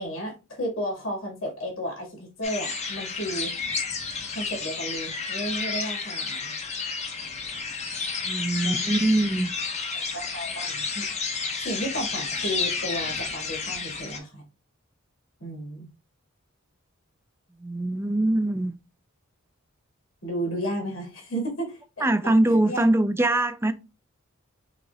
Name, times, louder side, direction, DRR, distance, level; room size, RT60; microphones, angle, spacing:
voice 1, 0.0-3.5 4.3-6.5 8.6-8.9 9.9-11.1 11.6-14.4 15.4-15.9 20.2-22.1 22.5-22.9, equal, 70° left, 2.3 m, -33 dB
sound 1, 2.4-14.2, left 4 dB, 35° left, 0.9 m, -31 dB
voice 2, 8.2-9.5 17.6-18.8 22.0-23.7, right 1 dB, 10° right, 0.3 m, -23 dB
6.0 x 2.1 x 3.4 m
head